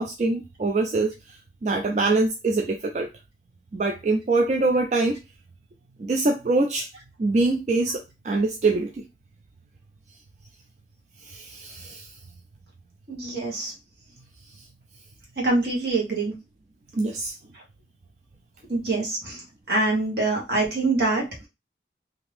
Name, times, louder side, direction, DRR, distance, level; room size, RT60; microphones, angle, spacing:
voice 1, 0.0-3.1 3.7-5.2 6.0-6.9 7.2-9.0 11.2-12.1 16.9-17.3, right 3 dB, 40° right, 3 dB, 0.3 m, -24 dB
voice 2, 13.1-13.7 15.4-16.3 18.7-21.5, right 2 dB, 70° right, -2 dB, 1.3 m, -25 dB
2.8 x 2.5 x 3.2 m, 0.25 s
head